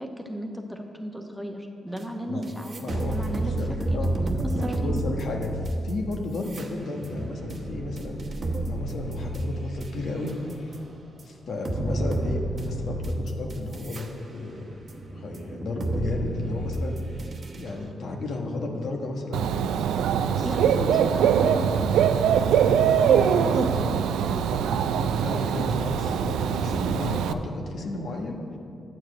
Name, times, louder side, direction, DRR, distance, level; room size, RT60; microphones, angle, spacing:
voice 1, 0.0-3.5 3.9-5.0 20.4-21.8 23.0-24.5, equal, 5° right, 3 dB, 1.0 m, -35 dB
sound 1, 2.0-2.1 2.4-10.8 11.2-11.3 11.6-14.1 14.5-17.7, right 1 dB, 50° right, 1.0 m, -30 dB
voice 2, 2.8-4.1 4.8-5.6 5.8-10.8 11.2-14.8 15.1-17.2 17.5-19.5 20.2-21.0 22.9-24.1 24.5-24.6 25.0-28.6, left 2 dB, 70° left, 1 dB, 1.2 m, -33 dB
Dog / Bird, 19.3-27.3, right 8 dB, 90° right, 0.3 m, -22 dB
8.7 x 4.7 x 7.5 m, 2.4 s
cardioid pair, 65°, 0 cm